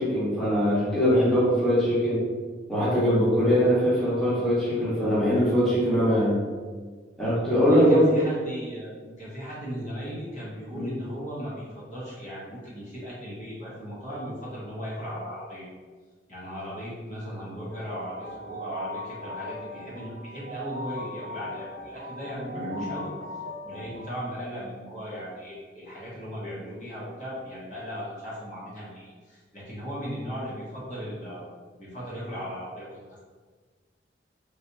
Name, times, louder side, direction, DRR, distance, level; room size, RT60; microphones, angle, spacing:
voice 1, 0.0-2.3 2.7-6.4 7.2-8.1 10.7-10.9 22.5-22.8, equal, ahead, -11 dB, 1.0 m, -22 dB
voice 2, 7.5-15.7 16.3-23.1 23.6-31.4 31.8-33.0, equal, 40° left, -8 dB, 0.9 m, -37 dB
sound 1, 17.7-24.1, left 1 dB, 85° right, 0.7 m, -39 dB
3.1 x 2.8 x 2.6 m, 1.5 s
head